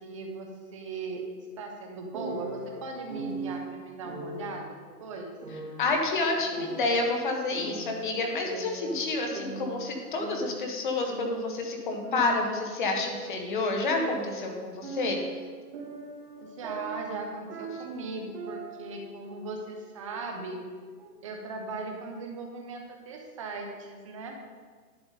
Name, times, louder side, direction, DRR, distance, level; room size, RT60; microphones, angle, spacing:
voice 1, 0.0-1.2 1.6-5.3 16.4-20.6 21.2-24.4, right 3 dB, 20° right, 2 dB, 0.9 m, -38 dB
sound 1, 2.1-3.6 4.0-4.6 5.4-7.1 7.5-9.1 9.3-11.6 12.0-14.5 14.8-18.9 19.2-19.6 20.1-21.1, right 3 dB, 40° right, 3.2 m, -40 dB
voice 2, 5.8-15.2, left 3 dB, 30° left, 2 dB, 1.3 m, -29 dB
11.5 x 7.8 x 4.1 m, 1.5 s
hypercardioid pair, 165°, 49 cm